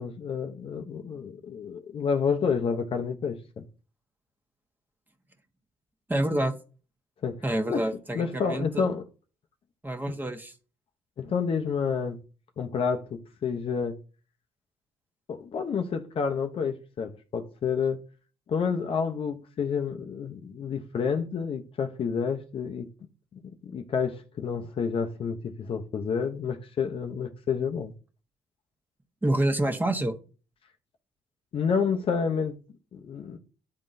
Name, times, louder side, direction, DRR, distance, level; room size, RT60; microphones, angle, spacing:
voice 1, 0.0-3.6 7.2-7.4 7.7-7.9 8.1-9.0 11.2-12.2 12.6-14.0 15.3-18.0 18.5-22.9 23.3-27.9 31.5-32.6 32.9-33.4, left 6 dB, 50° left, 0.7 m, -29 dB
voice 2, 6.1-6.6 7.4-8.8 9.8-10.5 29.2-30.2, right 1 dB, 15° right, 1.2 m, -27 dB
9.7 x 3.7 x 2.6 m
hypercardioid pair, 55°, 12 cm